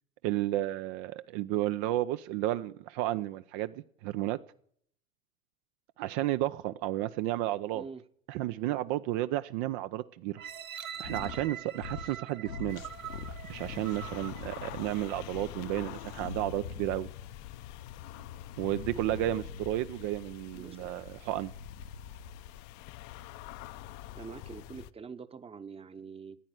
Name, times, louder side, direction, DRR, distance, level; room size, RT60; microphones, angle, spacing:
voice 1, 0.2-3.7 4.0-4.4 6.0-7.8 8.3-10.4 11.0-12.8 13.5-17.1 18.6-21.5, right 15 dB, 50° right, 0.7 m, -32 dB
sound 1, 10.4-15.3 15.9-16.0, right 9 dB, 80° right, 1.0 m, -44 dB
sound 2, 11.0-11.5 11.8-12.2 12.5-14.8 15.3-17.2 18.5-20.0 21.4-22.4, left 5 dB, 75° left, 1.5 m, -44 dB
sound 3, 12.7-24.9, left 13 dB, 45° left, 0.8 m, -46 dB
voice 2, 24.1-26.4, right 5 dB, 15° right, 1.0 m, -45 dB
15.5 x 9.7 x 9.4 m
figure-of-eight pair, 80°, 40 cm